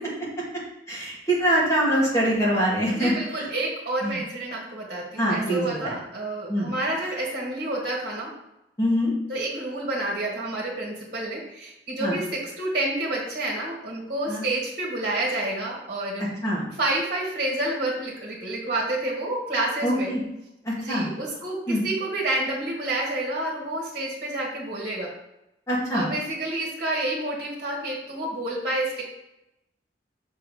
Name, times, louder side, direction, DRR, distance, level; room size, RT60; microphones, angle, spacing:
voice 1, 0.9-3.1 4.0-4.2 5.2-6.0 6.5-6.7 8.8-9.1 12.0-12.2 14.3-14.4 16.4-16.6 19.8-20.2 20.6-21.1 21.7-21.8 25.7-26.1, equal, 15° left, -6 dB, 2.4 m, -24 dB
voice 2, 2.9-8.3 9.3-16.2 16.8-20.1 20.8-25.1 25.9-29.0, right 1 dB, 50° right, -3 dB, 1.9 m, -29 dB
6.5 x 4.7 x 5.0 m, 0.87 s
head